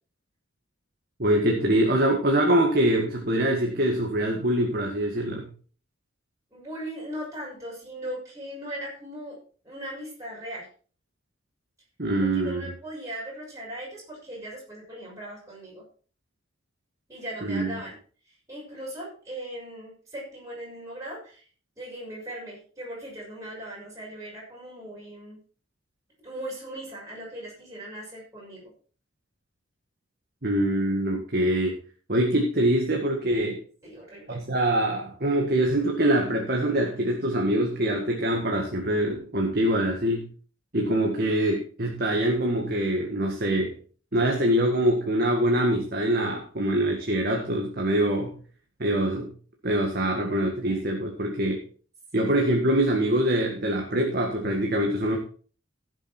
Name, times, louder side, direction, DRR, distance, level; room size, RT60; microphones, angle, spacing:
voice 1, 1.2-5.5 12.0-12.7 17.4-17.7 30.4-31.7 32.1-33.6 34.3-40.3 40.7-43.8 44.1-48.3 48.8-49.3 49.6-51.6 52.1-55.2, right 1 dB, 50° right, 0 dB, 1.9 m, -24 dB
voice 2, 6.5-9.4 9.6-10.7 12.3-15.8 17.1-17.9 18.3-21.5 21.8-25.4 26.2-28.7 33.8-34.4 52.1-52.3, right 1 dB, 15° right, -5 dB, 6.5 m, -39 dB
16.0 x 7.5 x 4.5 m, 0.41 s
head